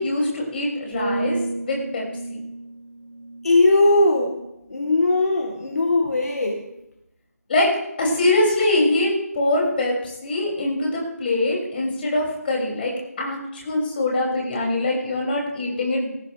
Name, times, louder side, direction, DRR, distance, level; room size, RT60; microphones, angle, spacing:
voice 1, 0.0-2.0 2.3-2.4 7.5-7.7 8.0-16.1, left 2 dB, 35° left, -2 dB, 6.5 m, -23 dB
sound 1, 0.9-4.8 5.3-5.6, right 1 dB, 10° left, 5.8 m, -32 dB
voice 2, 3.4-4.4 4.7-6.6, left 2 dB, 65° left, 2 dB, 2.0 m, -19 dB
19.0 x 14.5 x 3.5 m, 0.89 s
figure-of-eight pair, 160°, 9 cm